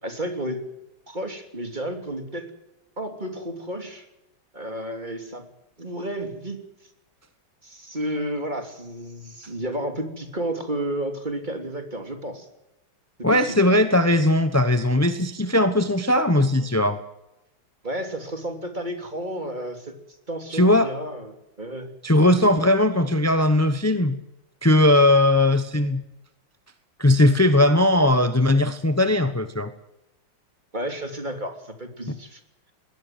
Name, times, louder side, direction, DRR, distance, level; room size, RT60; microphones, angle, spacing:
voice 1, 0.0-0.6 1.1-2.5 3.0-4.1 4.5-5.5 5.8-6.7 7.6-12.5 13.2-13.6 17.8-20.0 20.3-21.3 21.6-21.9 30.7-32.4, right 1 dB, 20° right, 6 dB, 3.2 m, -31 dB
voice 2, 13.2-17.0 20.5-20.9 22.0-24.2 24.6-26.0 27.0-29.7, left 1 dB, 15° left, 10 dB, 0.6 m, -19 dB
21.0 x 17.0 x 9.3 m, 0.93 s
omnidirectional pair, 2.4 m